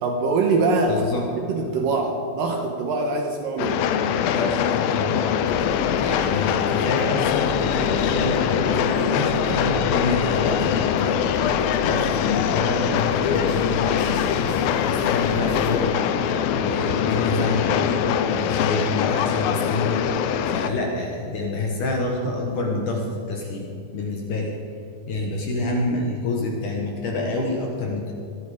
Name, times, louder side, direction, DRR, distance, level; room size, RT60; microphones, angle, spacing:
voice 1, 0.0-1.1 1.4-3.8, right 3 dB, 70° right, 2 dB, 2.3 m, -23 dB
voice 2, 0.9-1.3 4.1-5.3 6.0-11.2 11.8-18.0 18.3-20.1 20.5-24.6 25.1-28.1, left 2 dB, 60° left, 0 dB, 2.2 m, -27 dB
Train, 3.6-20.7, left 8 dB, 85° left, 2.1 m, -23 dB
sound 1, 5.4-15.7, left 4 dB, 15° right, 2.1 m, -38 dB
24.0 x 10.5 x 5.0 m, 2.7 s
omnidirectional pair, 5.1 m